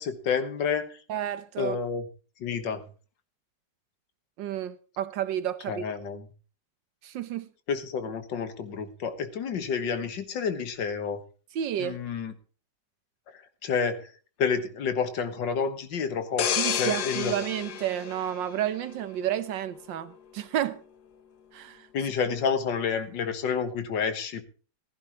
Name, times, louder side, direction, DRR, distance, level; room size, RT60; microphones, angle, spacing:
voice 1, 0.0-1.0 1.6-2.1 2.4-2.9 5.7-6.3 7.7-11.2 11.8-12.3 13.3-14.1 14.4-17.3 21.9-24.4, left 6 dB, 90° left, 2.0 m, -29 dB
voice 2, 1.1-1.8 4.4-5.8 7.0-7.5 11.5-12.0 16.6-20.8 21.5-21.9, right 11 dB, 85° right, 1.6 m, -31 dB
sound 1, 16.4-19.1 19.5-19.7, left 8 dB, 65° left, 1.4 m, -30 dB
15.0 x 15.0 x 3.0 m
omnidirectional pair, 1.9 m